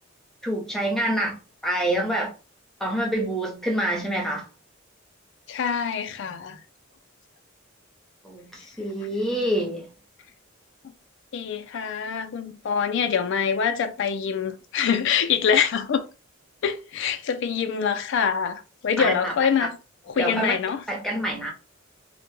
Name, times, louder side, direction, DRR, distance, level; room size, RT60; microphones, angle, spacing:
voice 1, 0.4-1.4 1.6-2.3 2.8-4.5 8.2-9.8 19.0-19.5 20.2-20.5 20.9-21.5, right 1 dB, ahead, 0.6 m, -26 dB
voice 2, 5.5-6.6 11.3-16.1 16.6-19.8 20.1-20.8, left 7 dB, 65° left, 0.3 m, -25 dB
2.1 x 2.1 x 3.0 m
head